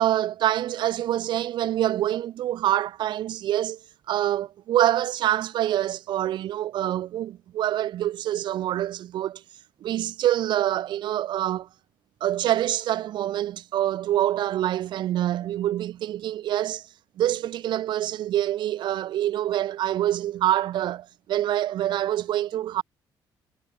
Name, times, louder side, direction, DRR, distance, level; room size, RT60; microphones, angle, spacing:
voice 1, 0.0-3.8 4.1-9.4 9.8-11.7 12.2-16.8 17.2-22.8, right 12 dB, 70° right, 7.9 m, -26 dB
cardioid pair, 170°, 8 cm